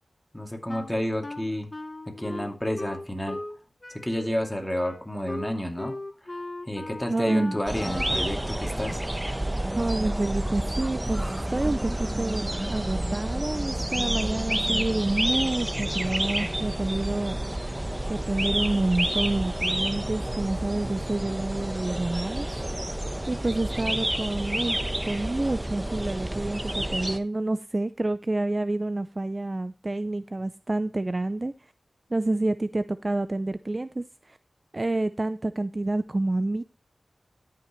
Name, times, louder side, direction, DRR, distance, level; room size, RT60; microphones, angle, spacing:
voice 1, 0.3-1.7 2.1-3.4 3.9-5.9 6.2-6.3 6.6-9.0, equal, 10° left, 2.5 m, -30 dB
Wind instrument woodwind instrument, 0.7-3.6 3.8-8.3, left 2 dB, 35° left, 1.0 m, -38 dB
voice 2, 7.1-7.6 9.7-17.4 18.1-22.5 23.3-31.5 32.1-34.4 34.7-36.6, right 2 dB, 35° right, 0.4 m, -28 dB
sound 1, 7.7-27.2, right 1 dB, 15° right, 0.9 m, -29 dB
13.0 x 5.8 x 3.1 m
cardioid pair, 55°, 0 cm